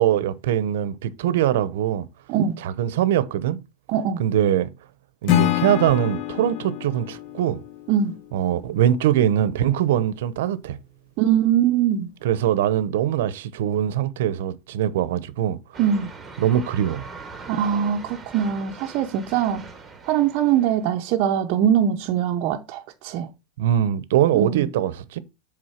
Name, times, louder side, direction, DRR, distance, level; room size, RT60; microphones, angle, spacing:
voice 1, 0.0-2.1 2.6-3.6 4.2-4.7 5.2-7.6 8.3-10.8 12.2-15.6 16.4-17.0 23.6-25.2, right 11 dB, 80° right, 0.8 m, -22 dB
voice 2, 2.3-2.6 3.9-4.2 7.9-8.2 11.2-12.1 15.8-16.1 17.5-19.6 20.0-23.3 24.3-24.7, right 9 dB, 40° right, 0.6 m, -22 dB
Acoustic guitar / Strum, 5.3-8.4, left 13 dB, 40° left, 0.7 m, -26 dB
sound 1, 15.7-20.9, right 4 dB, 10° right, 1.1 m, -42 dB
7.9 x 3.6 x 5.8 m
supercardioid pair, 170°, 0 cm